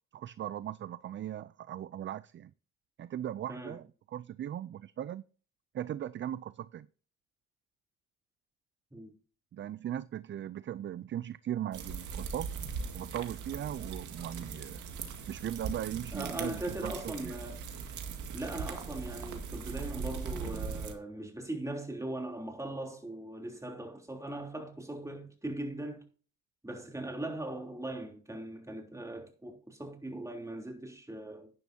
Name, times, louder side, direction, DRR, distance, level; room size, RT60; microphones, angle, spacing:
voice 1, 0.1-2.5 3.0-5.2 5.7-6.9 9.5-12.5 12.9-14.8 15.3-17.3, right 11 dB, 40° right, 0.4 m, -38 dB
sound 1, 11.7-20.9, right 5 dB, 75° right, 2.1 m, -40 dB
voice 2, 16.1-17.7 18.3-26.1 26.6-31.5, right 1 dB, 10° right, 3.3 m, -40 dB
11.0 x 10.5 x 2.8 m
cardioid pair, 90°, 30 cm